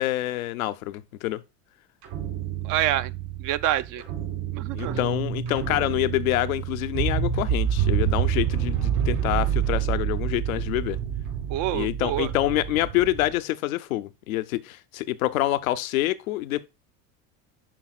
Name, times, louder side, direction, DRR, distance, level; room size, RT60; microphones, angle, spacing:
voice 1, 0.0-1.4 4.7-11.0 11.7-16.7, left 16 dB, 90° left, 0.7 m, -26 dB
sound 1, 2.0-13.3, right 9 dB, 65° right, 4.1 m, -28 dB
voice 2, 2.6-3.1 3.4-4.0 4.5-5.0 11.5-12.3, right 13 dB, 50° right, 0.5 m, -26 dB
10.0 x 4.1 x 2.3 m
supercardioid pair, 95°, 41 cm